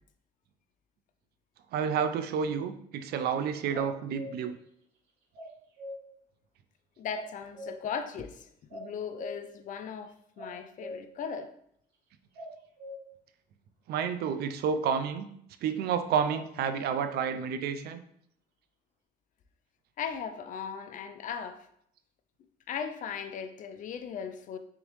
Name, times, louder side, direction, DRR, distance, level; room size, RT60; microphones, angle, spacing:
voice 1, 1.7-4.6 13.9-15.3 15.6-18.0, right 7 dB, 70° right, 0.4 m, -30 dB
sound 1, 3.7-4.4 5.3-6.0 7.1-7.9 8.7-9.4 10.4-11.1 12.4-13.0 16.3-16.9, left 1 dB, 85° right, 0.9 m, -42 dB
voice 2, 7.0-11.5 20.0-21.7 22.7-24.6, left 7 dB, 50° left, 0.4 m, -38 dB
3.6 x 3.4 x 3.1 m
cardioid pair, 110°, 17 cm